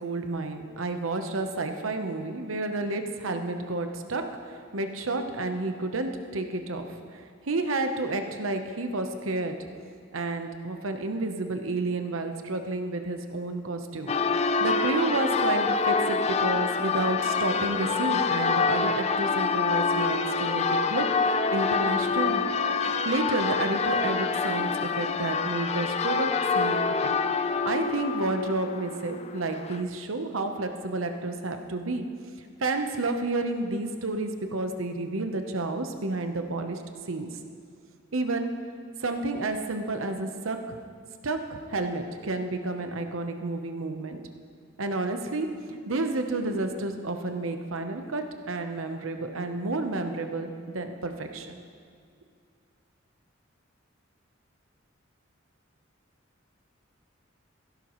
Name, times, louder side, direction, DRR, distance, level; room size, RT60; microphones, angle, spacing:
voice 1, 0.0-6.8 7.1-9.6 10.1-14.2 14.4-21.1 21.5-22.4 23.0-26.8 27.6-32.0 32.6-36.8 37.1-37.3 38.1-38.5 39.0-40.8 41.2-44.2 44.8-51.6, right 2 dB, 80° right, 6 dB, 0.9 m, -30 dB
Church bell, 14.1-29.8, left 4 dB, 35° left, 0.4 m, -26 dB
15.5 x 12.0 x 3.1 m, 2.3 s
head